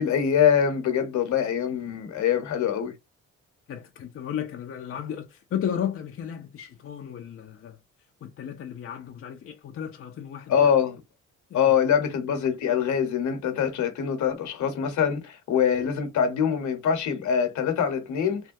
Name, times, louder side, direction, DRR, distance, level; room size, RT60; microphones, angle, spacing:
voice 1, 0.0-2.9 10.5-11.0 11.5-18.4, left 8 dB, 70° left, 1.1 m, -24 dB
voice 2, 3.7-7.8 8.2-10.5 11.5-11.7, left 9 dB, 45° left, 0.6 m, -34 dB
3.4 x 2.2 x 2.6 m
cardioid pair, 90°, 30 cm